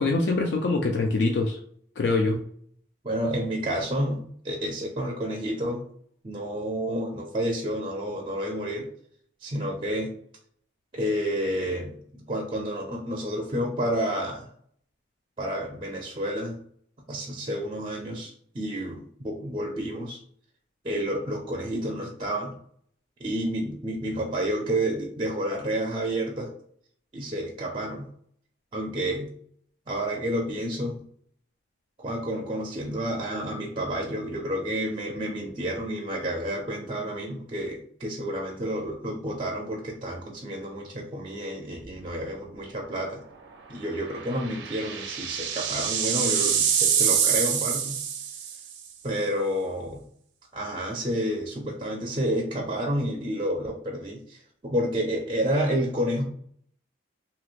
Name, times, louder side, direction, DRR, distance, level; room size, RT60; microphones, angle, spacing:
voice 1, 0.0-1.6 2.0-2.4, left 3 dB, 70° left, 2 dB, 0.4 m, -24 dB
voice 2, 3.0-5.8 6.2-8.9 9.4-10.1 10.9-14.5 15.4-16.6 17.1-20.2 20.8-22.6 23.2-26.5 27.1-28.1 28.7-29.3 29.9-31.0 32.0-43.2 43.7-48.0 49.0-50.0 50.5-56.2, equal, 30° right, 0 dB, 0.5 m, -30 dB
sound 1, 41.8-42.2 42.5-42.6 44.1-48.7, right 8 dB, 85° right, 0.5 m, -26 dB
3.0 x 2.8 x 2.4 m, 0.63 s
head